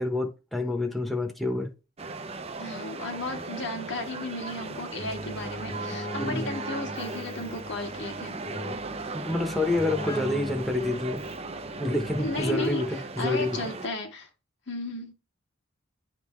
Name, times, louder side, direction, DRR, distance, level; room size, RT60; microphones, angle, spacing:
voice 1, 0.0-1.7 6.2-6.5 9.1-11.2 11.8-13.6, left 2 dB, ahead, 1.0 m, -28 dB
sound 1, 2.0-13.9, right 3 dB, 30° right, 0.6 m, -37 dB
voice 2, 2.6-8.4 12.2-12.8 13.2-14.3 14.7-15.1, left 2 dB, 60° left, 1.6 m, -34 dB
Keyboard (musical), 5.0-12.8, equal, 30° left, 1.0 m, -40 dB
10.0 x 3.7 x 3.2 m
head